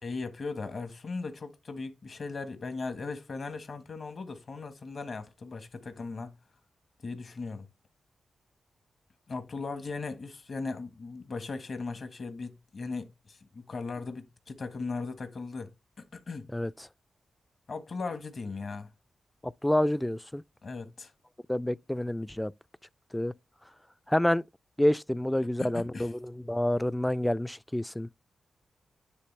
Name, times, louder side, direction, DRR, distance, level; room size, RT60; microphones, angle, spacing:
voice 1, 0.0-6.4 7.0-7.7 9.3-15.7 16.0-16.5 17.7-18.9 20.6-21.1 25.6-26.1, left 4 dB, 60° left, 1.4 m, -38 dB
voice 2, 19.4-20.4 21.5-22.5 23.1-23.3 24.1-24.4 24.8-28.1, left 1 dB, 10° left, 0.3 m, -28 dB
9.8 x 3.3 x 3.2 m
supercardioid pair, 45°, 0 cm